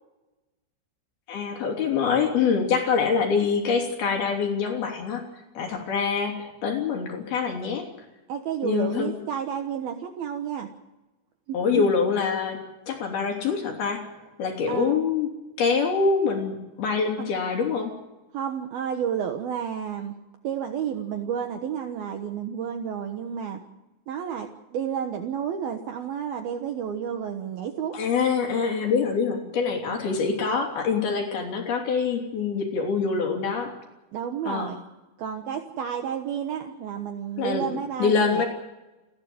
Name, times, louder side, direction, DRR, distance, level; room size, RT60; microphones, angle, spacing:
voice 1, 1.3-5.2 5.5-7.9 8.6-9.1 11.5-12.6 12.9-14.1 14.4-15.3 15.6-17.9 27.9-33.7 34.5-34.7 37.4-37.7 38.0-38.5, left 5 dB, 55° left, 2 dB, 4.6 m, -25 dB
voice 2, 8.3-10.7 11.5-11.8 14.7-15.0 17.2-17.3 18.3-20.2 20.4-23.6 24.1-28.0 29.9-30.0 34.1-34.8 35.2-38.4, right 8 dB, 65° right, 5 dB, 2.5 m, -31 dB
29.5 x 12.5 x 7.9 m, 1.1 s
omnidirectional pair, 5.8 m